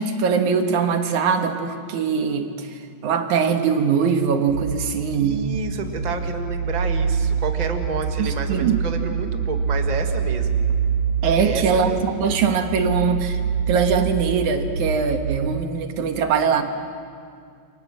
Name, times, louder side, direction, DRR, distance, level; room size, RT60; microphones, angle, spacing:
voice 1, 0.0-5.5 8.2-8.8 11.2-13.4 13.7-16.6, right 6 dB, 90° right, 6 dB, 3.0 m, -22 dB
sound 1, 4.5-15.5, right 6 dB, 75° right, 2.5 m, -25 dB
voice 2, 5.2-10.7 11.4-12.0, right 3 dB, 20° right, 5 dB, 1.2 m, -30 dB
29.0 x 25.0 x 7.6 m, 2.2 s
omnidirectional pair, 3.3 m